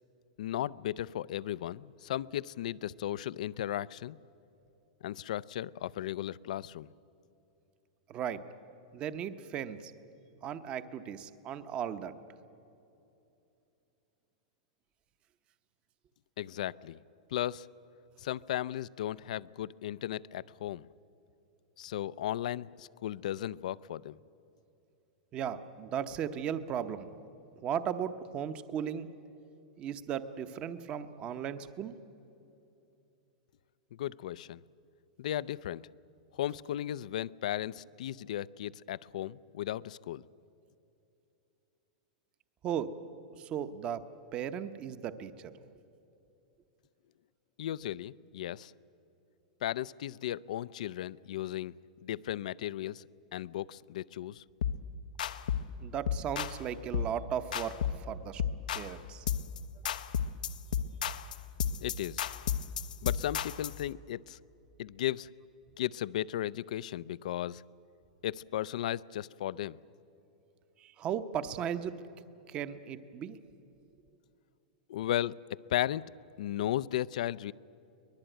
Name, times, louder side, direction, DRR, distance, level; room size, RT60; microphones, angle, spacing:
voice 1, 0.4-4.2 5.0-6.9 16.4-17.0 17.3-17.7 18.2-20.9 21.8-24.2 33.9-34.6 35.2-35.9 36.3-40.2 47.6-48.7 49.6-51.7 52.0-53.0 53.3-54.4 61.8-62.2 63.0-64.4 64.8-65.3 65.8-67.6 68.2-69.8 74.9-76.0 76.4-77.5, left 12 dB, 65° left, 20 dB, 0.5 m, -35 dB
voice 2, 8.1-8.4 8.9-9.9 10.4-12.2 25.3-27.1 27.6-29.1 29.8-32.0 42.6-42.9 43.4-44.0 44.3-45.5 55.8-58.4 58.7-59.2 70.8-71.9 72.5-73.4, right 8 dB, 25° right, 12 dB, 0.8 m, -36 dB
sound 1, 54.6-54.8 55.2-55.7 56.1-56.6 56.9-57.2 57.5-58.1 58.4-58.9 59.3-59.6 59.8-63.8, left 8 dB, 90° left, 0.9 m, -33 dB
23.5 x 20.5 x 9.1 m, 2.9 s
supercardioid pair, 165°, 4 cm